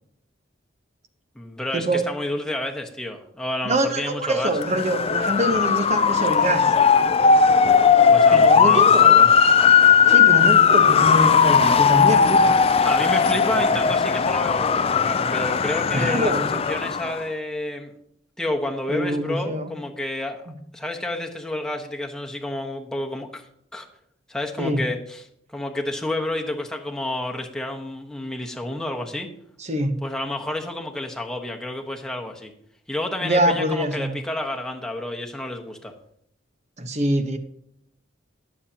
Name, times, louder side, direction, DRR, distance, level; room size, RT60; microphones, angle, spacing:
voice 1, 1.3-4.5 8.1-9.3 12.8-17.9 18.4-20.4 20.7-23.5 23.7-23.9 24.3-25.2 25.5-29.3 30.0-32.5 32.9-35.9, left 1 dB, 5° left, 1 dB, 1.3 m, -30 dB
voice 2, 3.6-6.7 8.3-9.2 10.1-12.5 15.9-16.5 18.9-19.7 24.6-24.8 29.6-30.0 33.2-34.2 36.8-37.4, right 1 dB, 35° right, 7 dB, 1.1 m, -24 dB
Motor vehicle (road) / Siren, 4.5-17.2, left 6 dB, 30° left, 0.4 m, -17 dB
21.5 x 7.5 x 2.9 m, 0.69 s
head